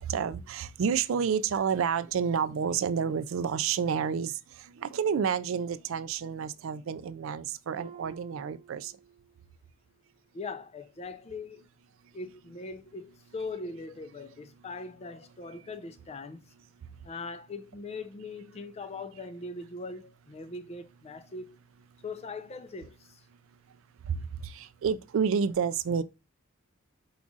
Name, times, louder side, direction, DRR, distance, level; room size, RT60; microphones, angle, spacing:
voice 1, 0.0-8.9 24.0-26.0, right 7 dB, 70° right, 0.4 m, -30 dB
Harp, 7.8-9.5 9.9-10.3 10.9-11.0, right 6 dB, 30° right, 0.7 m, -51 dB
voice 2, 10.3-11.7 12.1-16.4 17.0-21.6 22.0-23.2, left 3 dB, 30° left, 0.4 m, -41 dB
4.9 x 2.4 x 3.8 m
head